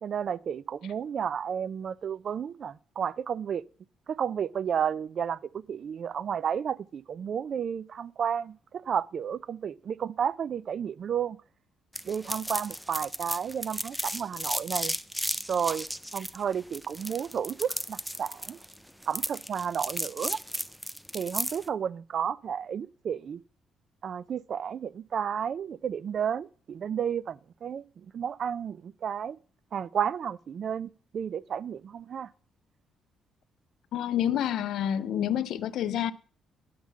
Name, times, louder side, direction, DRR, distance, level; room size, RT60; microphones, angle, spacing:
voice 1, 0.0-3.6 4.1-11.4 12.0-14.9 15.5-15.9 16.1-18.6 19.1-20.4 21.1-23.4 24.0-29.4 29.7-32.3, right 8 dB, 55° right, 0.4 m, -32 dB
sound 1, 11.9-21.7, equal, ahead, 0.5 m, -34 dB
voice 2, 33.9-36.1, left 10 dB, 80° left, 0.5 m, -28 dB
10.0 x 3.7 x 7.3 m
cardioid pair, 90°, 0 cm